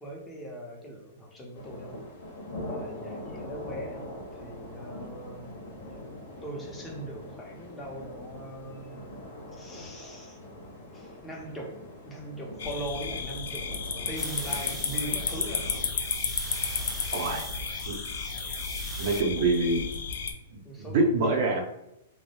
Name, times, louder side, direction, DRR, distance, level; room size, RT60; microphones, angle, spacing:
voice 1, 0.0-2.0 2.7-5.5 6.4-9.1 9.6-10.4 10.9-11.8 12.0-13.8 14.1-15.7 19.4-19.5 20.6-21.5, right 1 dB, 15° left, -1 dB, 0.7 m, -40 dB
sound 1, 1.5-15.9, left 1 dB, 60° left, 0.8 m, -43 dB
sound 2, 12.6-20.3, left 5 dB, 75° left, 0.3 m, -32 dB
sound 3, 14.2-19.2, right 5 dB, 20° right, 0.3 m, -42 dB
voice 2, 17.1-17.5 17.9-18.0 19.0-19.8 20.5-21.6, right 3 dB, 55° right, 1 dB, 0.7 m, -25 dB
2.1 x 2.0 x 3.0 m, 0.86 s
hypercardioid pair, 125°, 0 cm